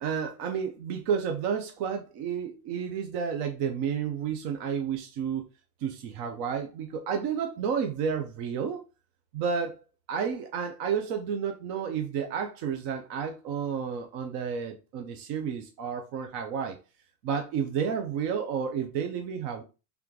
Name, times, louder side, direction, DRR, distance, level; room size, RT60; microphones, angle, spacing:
voice 1, 0.0-5.4 5.8-8.8 9.3-9.8 10.1-16.8 17.2-19.6, right 7 dB, 55° right, 0.7 m, -31 dB
3.5 x 3.1 x 3.8 m
supercardioid pair, 140°, 45 cm